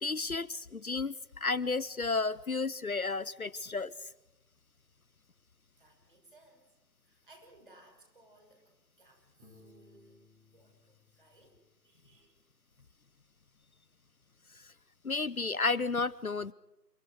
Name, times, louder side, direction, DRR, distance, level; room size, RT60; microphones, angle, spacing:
voice 1, 0.0-3.9 15.0-16.5, left 3 dB, 60° left, 21 dB, 0.8 m, -32 dB
voice 2, 5.7-6.7 7.0-12.4, right 2 dB, 30° right, 3 dB, 5.9 m, -62 dB
Piano, 9.4-12.1, left 2 dB, 10° right, 6.5 m, -62 dB
29.0 x 27.0 x 4.9 m, 0.96 s
figure-of-eight pair, 165°, 48 cm